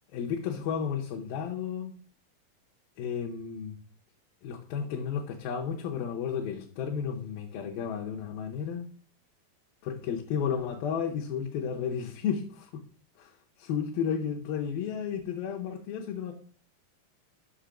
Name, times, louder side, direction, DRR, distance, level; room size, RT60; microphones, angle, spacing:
voice 1, 0.1-1.9 3.0-3.7 4.4-8.9 9.8-12.8 13.2-13.3 13.7-16.3, left 7 dB, 85° left, 2.7 m, -32 dB
7.1 x 6.0 x 5.0 m
omnidirectional pair, 4.1 m